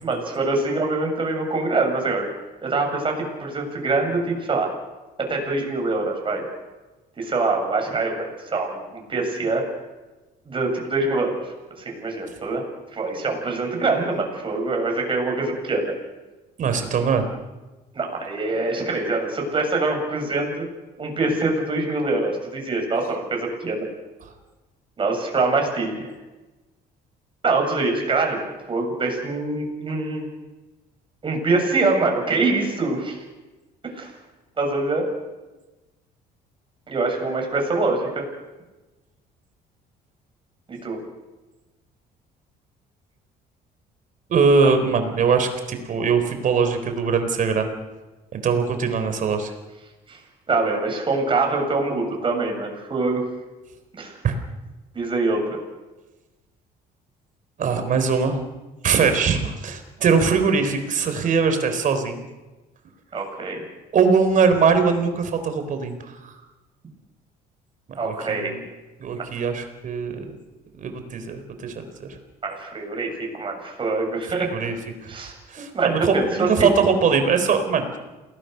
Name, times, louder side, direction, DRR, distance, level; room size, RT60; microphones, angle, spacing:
voice 1, 0.0-2.3 2.6-4.7 5.2-6.4 7.2-9.7 10.5-12.6 12.9-15.9 17.9-20.6 21.0-23.9 25.0-26.1 27.4-30.3 31.2-33.2 33.8-34.1 34.6-35.1 36.9-38.2 40.7-41.0 44.6-44.7 50.1-50.2 50.5-53.3 53.9-54.2 54.9-55.6 63.1-63.6 68.0-68.6 69.2-69.3 72.4-74.5 75.1-76.5 76.8-76.9, right 3 dB, 30° right, 2 dB, 7.6 m, -24 dB
voice 2, 16.6-17.3 44.3-47.7 48.3-49.5 54.2-54.4 57.6-58.4 58.8-62.2 63.9-66.1 67.9-68.6 69.0-70.3 70.8-72.2 74.3-74.7 75.0-77.8, right 5 dB, 50° right, 8 dB, 3.9 m, -21 dB
28.0 x 19.5 x 6.8 m, 1.1 s
cardioid pair, 110°, 17 cm